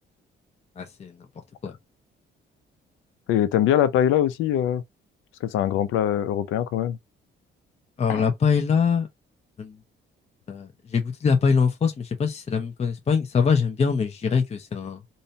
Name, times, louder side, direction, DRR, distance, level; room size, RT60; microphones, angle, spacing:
voice 1, 0.8-1.1 1.6-1.7 8.0-9.1 9.6-9.7 10.5-15.0, left 6 dB, 35° left, 0.6 m, -23 dB
voice 2, 3.3-4.8 5.4-7.0 8.1-8.3, left 10 dB, 85° left, 0.5 m, -22 dB
2.7 x 2.2 x 2.6 m
cardioid pair, 90°, 20 cm